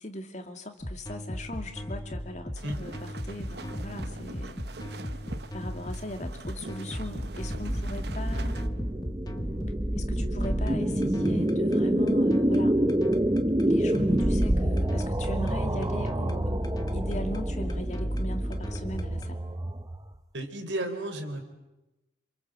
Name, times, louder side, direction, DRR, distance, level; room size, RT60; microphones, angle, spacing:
voice 1, 0.0-4.6 5.0-5.1 5.5-8.6 9.9-12.8 13.6-19.4, left 1 dB, 40° left, 5 dB, 2.6 m, -38 dB
sound 1, 0.8-19.4, equal, 20° left, 1.4 m, -39 dB
sound 2, 2.6-8.7, right 3 dB, 60° right, 1.0 m, -44 dB
sound 3, 7.0-20.1, right 1 dB, 20° right, 0.9 m, -27 dB
voice 2, 20.3-21.4, right 1 dB, 80° right, 7 dB, 3.8 m, -33 dB
27.5 x 27.0 x 7.8 m, 0.99 s
head